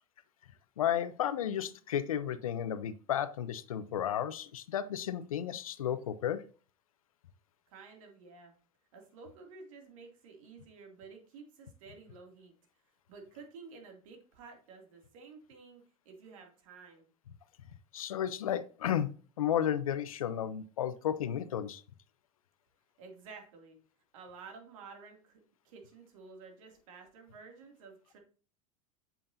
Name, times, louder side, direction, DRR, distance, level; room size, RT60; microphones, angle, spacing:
voice 1, 0.8-6.4 17.9-19.1 19.4-21.8, left 10 dB, 85° left, 14 dB, 0.7 m, -33 dB
voice 2, 7.7-8.5 8.9-12.5 13.1-17.1 23.0-23.8 24.1-28.2, right 4 dB, 75° right, 3 dB, 2.5 m, -52 dB
8.6 x 7.1 x 2.6 m, 0.38 s
hypercardioid pair, 90°, 17 cm